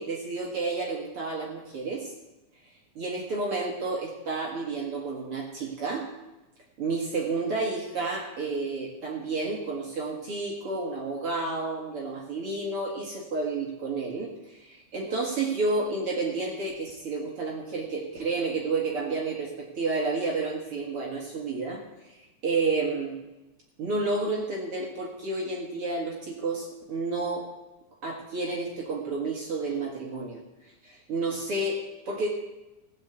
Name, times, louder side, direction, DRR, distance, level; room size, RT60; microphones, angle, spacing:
voice 1, 0.0-2.1 3.0-6.1 6.8-23.2 23.8-27.5 28.0-30.4 30.8-32.3, right 3 dB, 50° right, -2 dB, 2.7 m, -30 dB
16.0 x 6.5 x 8.1 m, 1.0 s
omnidirectional pair, 3.6 m